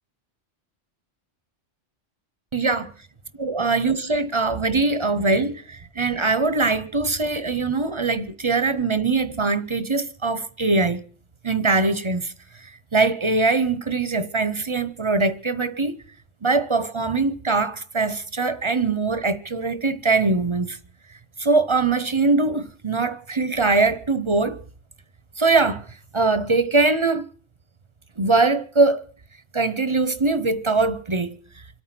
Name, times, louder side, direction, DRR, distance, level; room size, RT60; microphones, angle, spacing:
voice 1, 2.5-2.9 3.4-11.0 11.4-12.3 12.9-16.0 16.4-20.8 21.4-24.6 25.4-25.8 26.1-27.2 28.2-29.0 29.5-31.4, right 3 dB, 30° right, 0.7 m, -22 dB
26.0 x 9.1 x 5.9 m
omnidirectional pair, 1.2 m